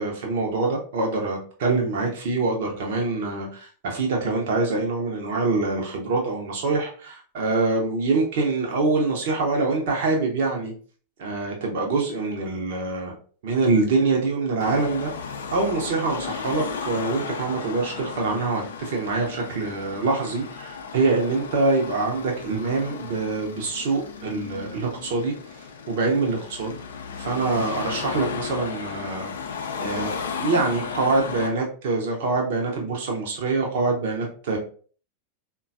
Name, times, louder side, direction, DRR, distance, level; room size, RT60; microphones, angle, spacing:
voice 1, 0.0-10.7 11.2-13.1 13.4-15.1 15.5-25.3 25.9-26.8 27.2-29.3 29.8-30.1 30.4-34.6, right 3 dB, 50° right, 0 dB, 0.7 m, -25 dB
Car passing by / Traffic noise roadway noise / Engine, 14.6-31.5, left 6 dB, 65° left, 0.4 m, -35 dB
3.8 x 2.2 x 2.5 m, 0.43 s
figure-of-eight pair, 90°, 0 cm